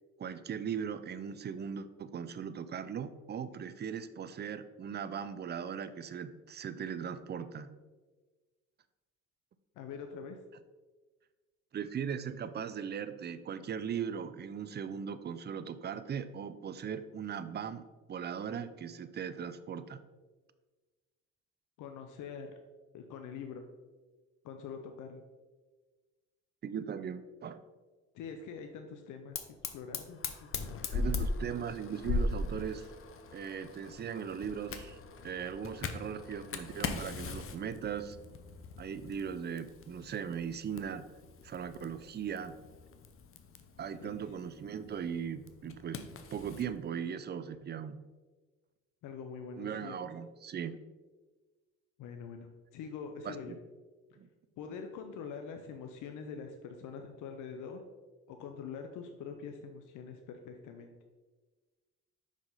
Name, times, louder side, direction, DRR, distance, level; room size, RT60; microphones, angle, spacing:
voice 1, 0.2-7.7 11.7-20.0 26.6-27.6 30.9-32.9 33.3-35.0 35.2-38.2 38.8-41.1 41.4-42.5 43.8-48.0 49.6-50.8 53.2-53.6 54.2-54.3, right 7 dB, 35° right, 13 dB, 0.4 m, -39 dB
voice 2, 9.8-10.4 21.8-22.5 22.9-23.7 24.4-25.2 28.1-30.5 44.0-44.2 49.0-50.0 52.0-53.5 54.6-57.8 58.3-60.9, left 6 dB, 85° left, 5 dB, 0.6 m, -44 dB
Fire, 29.3-46.7, left 3 dB, 45° left, 0.7 m, -40 dB
5.5 x 4.9 x 3.8 m, 1.3 s
cardioid pair, 90°, 30 cm